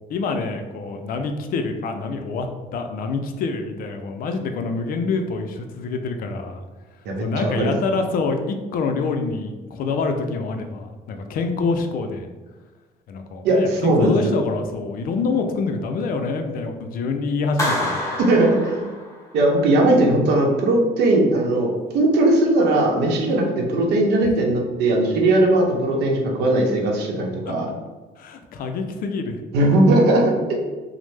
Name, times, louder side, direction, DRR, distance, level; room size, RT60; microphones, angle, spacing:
voice 1, 0.1-2.5 2.7-6.6 7.2-12.3 13.1-18.0 24.2-24.3 27.5-27.6 28.2-29.4, left 4 dB, 60° left, 6 dB, 0.4 m, -26 dB
voice 2, 7.0-7.7 13.4-14.3 18.3-18.9 19.3-27.7 29.5-30.5, right 1 dB, 75° right, 0 dB, 0.7 m, -19 dB
Clapping, 17.6-19.5, left 1 dB, 15° left, 0.9 m, -27 dB
3.1 x 2.0 x 3.2 m, 1.2 s
cardioid pair, 110°, 17 cm